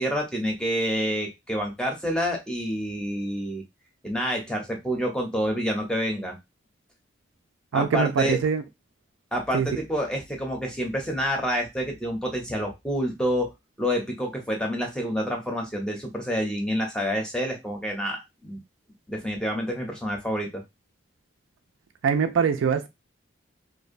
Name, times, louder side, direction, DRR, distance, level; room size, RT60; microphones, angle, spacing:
voice 1, 0.0-3.6 4.0-6.4 7.7-8.4 9.3-13.5 13.8-18.6 19.1-20.6, equal, 5° left, 0.5 m, -28 dB
voice 2, 7.7-8.6 9.5-9.8 22.0-22.9, right 6 dB, 90° right, 0.4 m, -23 dB
2.5 x 2.1 x 2.5 m
head